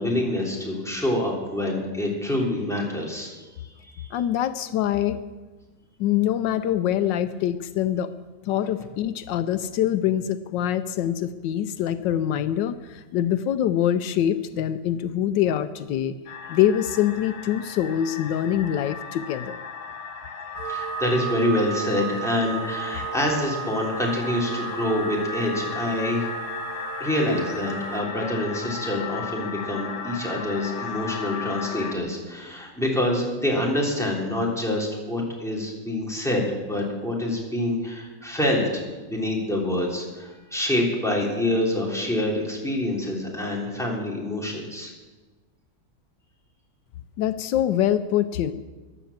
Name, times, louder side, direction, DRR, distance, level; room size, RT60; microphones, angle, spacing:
voice 1, 0.0-4.1 20.7-26.3 27.0-44.9, left 1 dB, ahead, -3 dB, 3.4 m, -26 dB
voice 2, 4.1-5.2 6.0-8.1 8.4-16.1 16.5-19.6 47.2-48.5, left 11 dB, 80° left, 11 dB, 1.3 m, -24 dB
sound 1, 16.3-31.9, left 5 dB, 60° left, 1.8 m, -36 dB
sound 2, 20.5-28.0, right 9 dB, 55° right, 1.3 m, -35 dB
15.5 x 10.5 x 7.3 m, 1.3 s
omnidirectional pair, 1.9 m